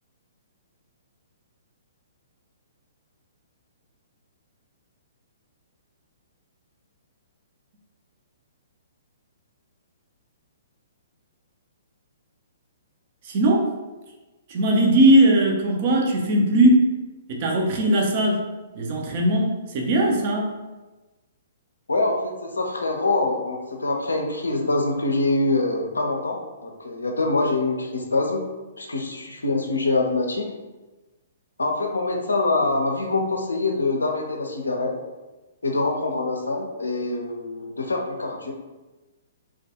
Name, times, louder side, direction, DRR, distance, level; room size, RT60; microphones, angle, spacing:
voice 1, 13.2-13.7 14.5-16.9 17.3-18.5 18.7-20.5, right 1 dB, 45° right, 1 dB, 0.5 m, -19 dB
voice 2, 21.9-28.4 28.8-30.5 31.6-34.9 35.6-38.5, left 2 dB, 80° left, 2 dB, 0.4 m, -24 dB
2.2 x 2.2 x 2.8 m, 1.1 s
figure-of-eight pair, 125°, 0 cm